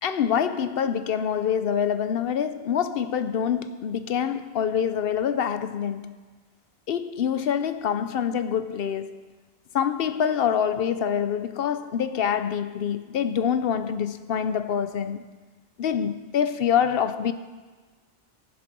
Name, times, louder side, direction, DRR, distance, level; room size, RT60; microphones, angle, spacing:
voice 1, 0.0-6.1 6.9-9.2 9.7-15.2 15.8-17.3, left 8 dB, 70° left, 0.8 m, -25 dB
15.0 x 7.7 x 6.0 m
omnidirectional pair, 1.1 m